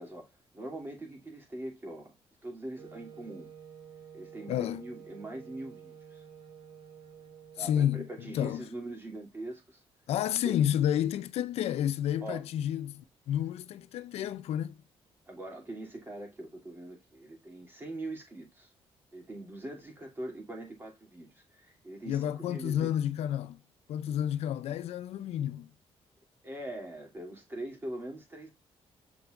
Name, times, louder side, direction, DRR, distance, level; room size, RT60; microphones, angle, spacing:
voice 1, 0.0-2.1 2.4-3.5 4.1-6.2 7.6-9.8 10.4-10.5 12.2-12.5 15.3-18.7 19.1-22.9 26.4-28.5, right 1 dB, 20° right, 3.0 m, -42 dB
Wind instrument woodwind instrument, 2.8-8.4, right 7 dB, 70° right, 4.8 m, -51 dB
voice 2, 4.5-4.8 7.6-8.7 10.1-14.8 22.1-23.6 23.9-25.7, left 10 dB, 80° left, 0.6 m, -30 dB
7.2 x 5.8 x 2.5 m
cardioid pair, 155°, 10 cm